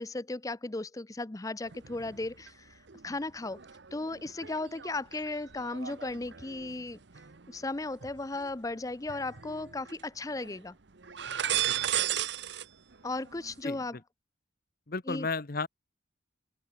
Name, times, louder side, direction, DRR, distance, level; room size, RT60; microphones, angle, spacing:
voice 1, 0.0-3.6 3.9-7.0 7.5-10.8 13.0-14.0 15.1-15.3, left 2 dB, 20° left, 0.5 m, -36 dB
sound 1, 1.6-2.5 2.9-8.5 9.1-10.0 10.3-10.6 11.0-12.7 12.9-13.6, right 11 dB, 65° right, 1.0 m, -36 dB
voice 2, 14.9-15.7, left 4 dB, 50° left, 1.1 m, -33 dB
open air
head